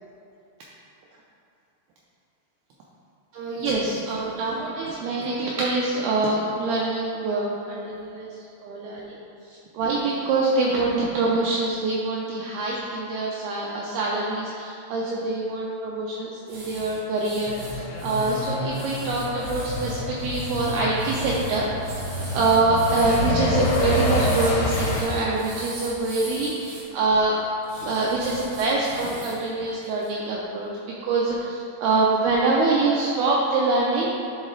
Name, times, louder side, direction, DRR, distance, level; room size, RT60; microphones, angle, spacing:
voice 1, 3.3-8.3 8.6-9.2 9.5-21.9 22.3-27.3 27.8-30.7 31.0-34.1, right 3 dB, 80° right, -4 dB, 2.2 m, -25 dB
sound 1, 16.5-26.8 27.6-29.4 29.8-30.1, right 2 dB, 65° right, 1.5 m, -40 dB
Truck, 17.5-25.0, left 1 dB, 80° left, 2.9 m, -27 dB
10.0 x 3.7 x 3.2 m, 2.6 s
omnidirectional pair, 5.0 m